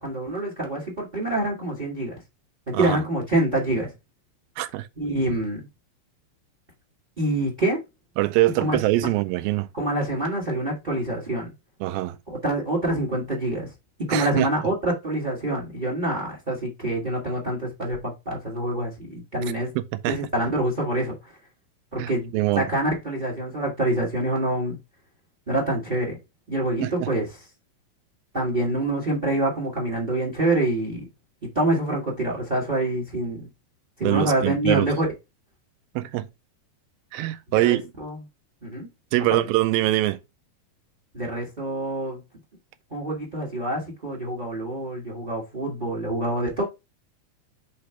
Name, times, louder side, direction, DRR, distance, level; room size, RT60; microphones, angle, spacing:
voice 1, 0.0-2.2 2.7-3.9 5.0-5.7 7.2-7.8 8.6-8.8 9.7-11.5 12.3-13.7 14.0-19.7 20.1-21.3 21.9-24.8 25.5-26.2 26.5-27.3 28.3-31.0 31.5-33.5 34.0-35.1 37.6-38.2 38.6-38.9 39.3-39.4 41.1-42.2 42.9-46.6, right 1 dB, 50° right, 0.5 m, -26 dB
voice 2, 4.6-4.9 8.2-9.7 11.8-12.2 14.1-14.5 19.8-20.2 22.0-22.7 26.8-27.1 34.0-34.9 36.0-36.3 37.1-37.8 39.1-40.2, right 16 dB, 85° right, 2.4 m, -23 dB
5.7 x 3.3 x 5.6 m
omnidirectional pair, 4.1 m